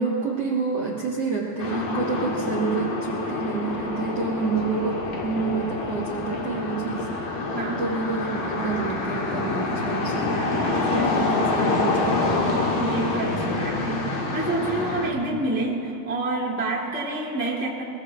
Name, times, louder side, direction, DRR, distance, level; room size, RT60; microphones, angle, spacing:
voice 1, 0.0-10.4 10.9-12.5, right 4 dB, 60° right, -3 dB, 1.6 m, -28 dB
sound 1, 1.6-15.1, left 3 dB, 60° left, 2.9 m, -26 dB
voice 2, 7.5-7.9 10.6-11.1 12.8-17.8, right 2 dB, 5° right, -5 dB, 0.9 m, -28 dB
23.5 x 22.0 x 2.4 m, 2.7 s
omnidirectional pair, 4.8 m